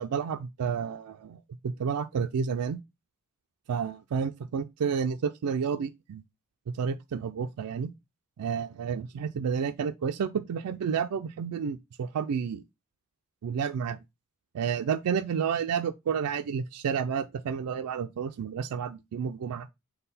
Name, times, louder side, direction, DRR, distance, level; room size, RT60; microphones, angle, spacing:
voice 1, 0.0-2.8 3.7-6.2 6.7-7.9 8.4-12.6 13.4-14.0 14.5-19.7, right 6 dB, 90° right, 0.4 m, -30 dB
5.5 x 2.1 x 4.1 m
head